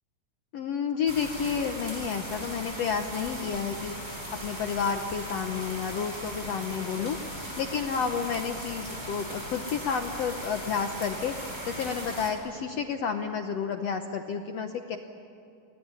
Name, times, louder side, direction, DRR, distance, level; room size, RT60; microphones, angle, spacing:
voice 1, 0.5-3.9 4.4-11.3 11.7-15.0, left 6 dB, 70° left, 6 dB, 1.5 m, -31 dB
sound 1, 1.1-12.3, equal, 10° right, 5.4 m, -38 dB
28.5 x 19.5 x 9.6 m, 2.7 s
omnidirectional pair, 4.0 m